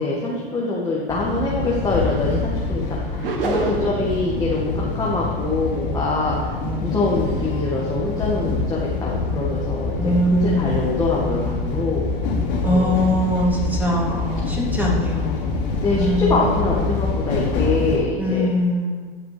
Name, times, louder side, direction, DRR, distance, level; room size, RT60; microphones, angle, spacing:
voice 1, 0.0-2.8 3.1-6.5 6.8-12.1 12.6-12.9 15.8-18.5, left 2 dB, 15° left, -5 dB, 2.0 m, -24 dB
sound 1, 1.1-18.0, left 3 dB, 65° left, 4.0 m, -25 dB
sound 2, 3.2-4.1, right 3 dB, 70° right, 1.8 m, -25 dB
voice 2, 6.6-6.9 10.0-10.9 12.6-15.5 15.9-16.4 18.2-19.1, equal, 5° right, -4 dB, 3.3 m, -22 dB
15.5 x 6.0 x 5.2 m, 1.5 s
hypercardioid pair, 100°, 29 cm